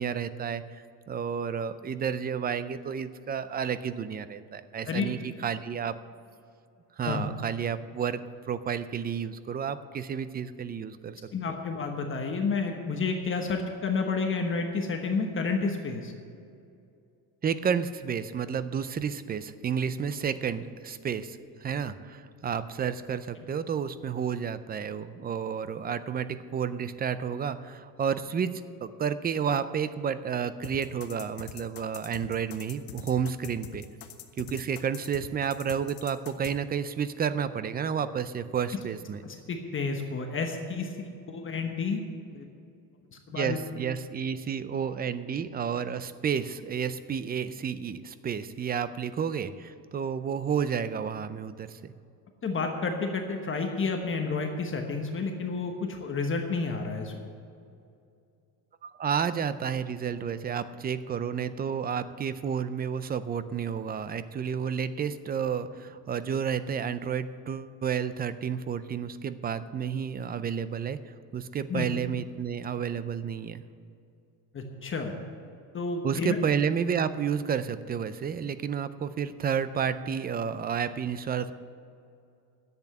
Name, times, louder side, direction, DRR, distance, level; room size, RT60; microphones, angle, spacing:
voice 1, 0.0-6.0 7.0-8.2 8.5-11.2 17.4-28.5 28.8-33.8 34.4-39.2 43.4-51.9 58.8-73.6 76.0-81.5, right 7 dB, 25° right, 13 dB, 0.4 m, -31 dB
voice 2, 11.3-16.1 39.2-42.0 42.3-42.5 43.1-43.6 52.4-57.1 71.7-71.9 74.5-75.2 75.7-76.4, left 4 dB, 30° left, 3 dB, 1.2 m, -30 dB
sound 1, 30.6-36.5, left 10 dB, 60° left, 1.1 m, -43 dB
10.5 x 8.1 x 8.7 m, 2.5 s
cardioid pair, 145°, 42 cm